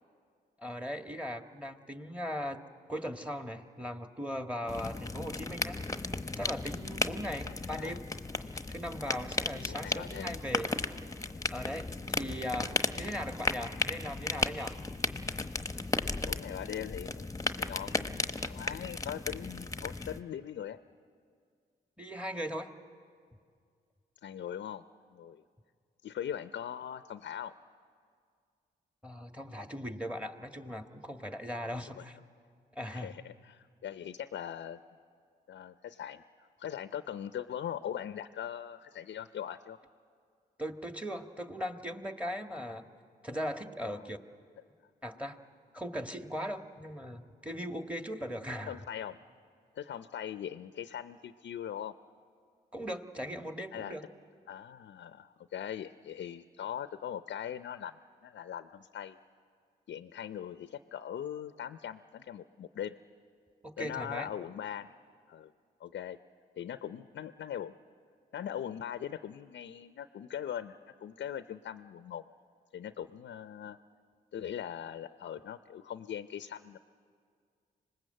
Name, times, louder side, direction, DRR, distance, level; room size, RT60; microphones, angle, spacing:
voice 1, 0.6-2.6 2.9-5.8 6.3-8.1 8.7-10.7 11.5-14.8 22.0-22.7 29.0-32.2 32.7-33.1 40.6-42.9 43.2-44.2 45.0-45.4 45.7-48.8 52.7-54.0 63.6-64.3, equal, 5° right, 6 dB, 1.6 m, -39 dB
sound 1, 4.7-20.2, left 2 dB, 15° left, 1.0 m, -35 dB
voice 2, 7.4-8.0 9.7-10.4 16.3-20.8 24.2-24.8 25.1-25.4 26.0-27.5 31.8-32.0 32.9-34.8 35.5-36.2 36.6-39.8 43.8-44.1 48.7-49.2 49.7-51.9 53.7-54.0 54.5-59.2 59.9-62.9 63.8-64.9 65.3-65.5 65.8-66.2 66.5-67.7 68.3-72.2 72.7-73.8 74.3-76.8, left 9 dB, 70° left, 11 dB, 0.6 m, -41 dB
26.0 x 19.5 x 7.8 m, 2.2 s
supercardioid pair, 50°, 19 cm